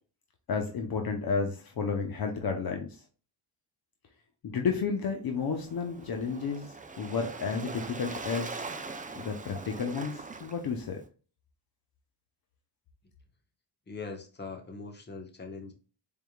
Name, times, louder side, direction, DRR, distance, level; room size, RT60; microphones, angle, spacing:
voice 1, 0.5-2.9 4.4-8.6 9.2-11.0, left 5 dB, 55° left, 3 dB, 0.9 m, -32 dB
Waves surf, 5.3-11.0, right 3 dB, 20° right, 0.5 m, -42 dB
voice 2, 13.9-15.7, left 4 dB, 25° left, 2 dB, 1.2 m, -41 dB
4.4 x 3.6 x 2.3 m, 0.36 s
cardioid pair, 80°, 43 cm